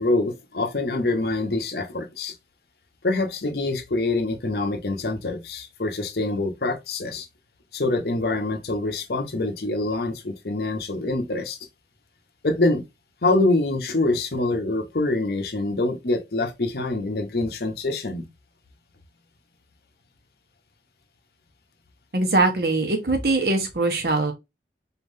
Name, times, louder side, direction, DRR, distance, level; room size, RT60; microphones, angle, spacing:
voice 1, 0.0-2.3 3.0-7.3 7.7-11.6 12.4-12.8 13.2-18.3, left 2 dB, 60° left, 0.8 m, -25 dB
voice 2, 22.1-24.3, right 2 dB, 60° right, 1.1 m, -22 dB
4.2 x 3.6 x 2.6 m
head